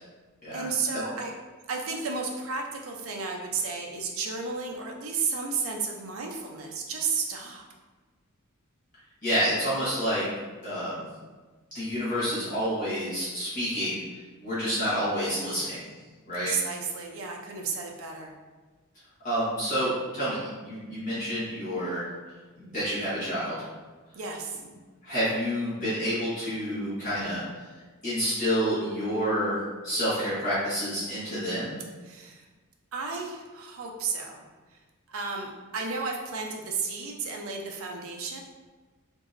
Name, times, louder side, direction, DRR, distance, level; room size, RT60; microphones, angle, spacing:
voice 1, 0.5-1.3 1.7-7.6 16.3-18.3 24.2-24.6 32.0-32.5 32.9-34.8 35.1-38.4, right 4 dB, 70° right, 1 dB, 0.5 m, -33 dB
voice 2, 9.2-10.3 10.6-11.0 11.7-14.0 14.4-15.8 16.3-16.5 19.2-22.0 22.6-23.6 25.0-27.4 28.0-29.5 29.8-31.7, equal, 40° left, -12 dB, 1.4 m, -28 dB
3.9 x 2.6 x 2.5 m, 1.3 s
head